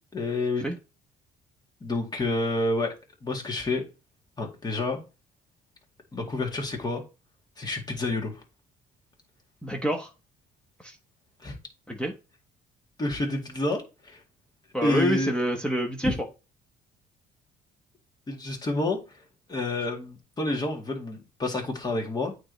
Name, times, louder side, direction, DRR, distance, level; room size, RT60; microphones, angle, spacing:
voice 1, 0.1-0.7 1.8-2.9 3.2-3.8 4.4-5.0 6.1-7.0 7.6-8.4 11.4-11.6 13.0-14.2 14.8-15.3 16.0-16.1 18.3-19.0 19.5-22.3, left 2 dB, 25° left, 2.0 m, -29 dB
voice 2, 9.6-10.1 10.8-10.9 11.9-12.1 14.7-16.1, equal, 5° left, 1.1 m, -27 dB
8.7 x 3.3 x 4.0 m
cardioid pair, 110°, 17 cm